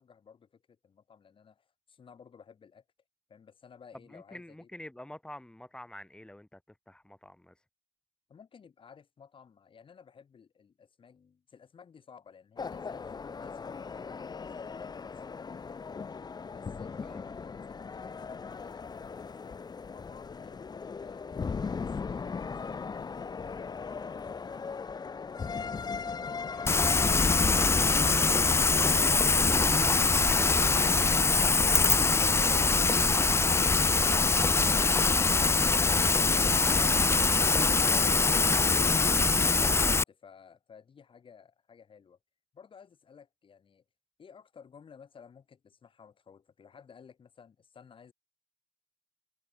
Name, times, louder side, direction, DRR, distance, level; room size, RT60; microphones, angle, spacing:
voice 1, 0.0-2.8 3.3-4.7 8.3-16.2 16.5-19.6 19.9-24.8 25.1-27.0 39.6-42.2 42.5-43.8 44.2-48.1, left 6 dB, 85° left, 6.9 m, -55 dB
voice 2, 4.1-7.6 17.0-17.2 26.5-26.7 27.5-27.7 30.2-31.4 37.9-39.0, left 1 dB, 10° left, 5.9 m, -47 dB
sound 1, 12.6-29.4, left 5 dB, 50° left, 1.3 m, -39 dB
Rain, 26.7-40.0, left 4 dB, 30° left, 0.5 m, -23 dB
wide cardioid pair, 130°, 9 cm